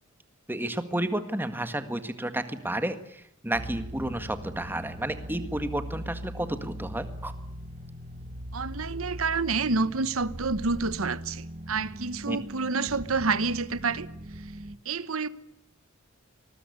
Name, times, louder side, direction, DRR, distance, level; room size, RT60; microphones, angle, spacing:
voice 1, 0.5-7.3 12.3-12.4, right 1 dB, 10° right, 1.7 m, -31 dB
sound 1, 3.5-14.8, equal, 35° right, 1.3 m, -40 dB
voice 2, 8.5-14.1 14.8-15.3, right 4 dB, 85° right, 1.1 m, -28 dB
25.5 x 20.5 x 9.7 m
head